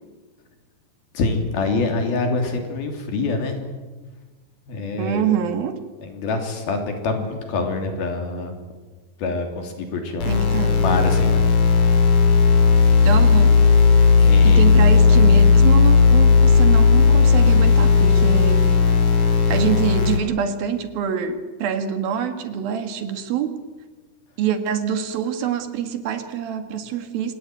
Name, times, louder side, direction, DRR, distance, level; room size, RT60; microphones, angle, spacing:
voice 1, 1.1-3.6 4.7-5.2 6.0-8.6 9.2-11.4 11.7-12.1 14.2-14.7, left 3 dB, 70° left, 4 dB, 5.0 m, -26 dB
voice 2, 5.0-5.8 10.3-10.8 13.0-13.6 14.4-18.6 19.5-23.6 24.4-27.3, right 8 dB, 70° right, 8 dB, 3.6 m, -25 dB
sound 1, 10.2-20.2, left 5 dB, 50° left, 4.7 m, -15 dB
26.5 x 18.0 x 9.3 m, 1.3 s
omnidirectional pair, 4.5 m